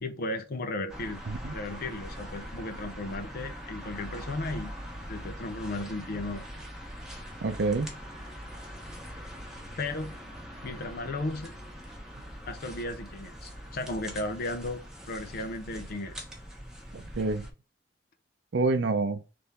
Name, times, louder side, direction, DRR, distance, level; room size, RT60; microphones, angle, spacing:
voice 1, 0.0-1.2 1.5-4.7 5.1-6.4 9.8-10.1 10.6-11.5 12.5-16.2, left 2 dB, 55° left, 0.5 m, -35 dB
sound 1, 0.9-17.5, equal, 5° right, 1.0 m, -42 dB
voice 2, 7.4-7.9 16.9-17.4 18.5-19.2, right 3 dB, 65° right, 0.5 m, -27 dB
3.5 x 3.4 x 4.2 m
head